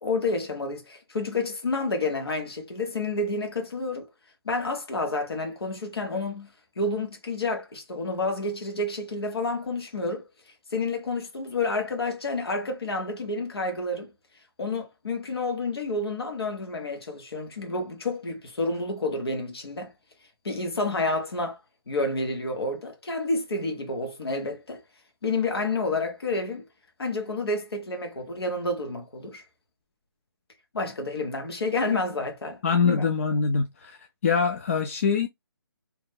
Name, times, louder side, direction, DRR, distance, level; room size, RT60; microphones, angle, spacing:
voice 1, 0.0-4.0 4.4-6.5 6.8-10.2 10.7-14.1 14.6-19.9 20.4-21.6 21.9-24.8 25.2-26.6 27.0-29.4 30.7-32.6 32.8-33.1, left 2 dB, 80° left, 1.3 m, -29 dB
voice 2, 32.6-34.0 34.2-35.3, left 5 dB, 35° left, 0.3 m, -24 dB
2.9 x 2.2 x 3.5 m
hypercardioid pair, 160°, 13 cm